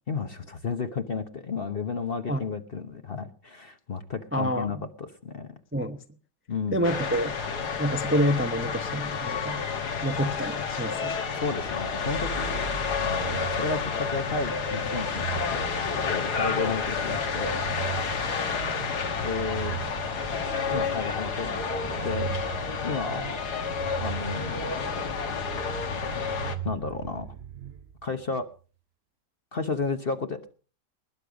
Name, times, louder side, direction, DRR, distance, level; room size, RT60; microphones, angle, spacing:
voice 1, 0.1-5.6 6.5-6.9 11.3-17.6 19.2-19.8 20.7-22.3 22.8-23.3 24.0-24.6 26.6-27.3 28.0-28.5 29.5-30.5, left 4 dB, 40° left, 1.1 m, -32 dB
voice 2, 4.3-4.7 5.7-6.0 6.7-7.3 7.8-9.6 10.0-11.2, equal, 10° right, 0.7 m, -27 dB
sound 1, 6.8-26.6, left 5 dB, 65° left, 2.0 m, -30 dB
sound 2, 11.5-28.4, right 10 dB, 45° right, 0.9 m, -40 dB
20.0 x 10.0 x 5.1 m
omnidirectional pair, 1.9 m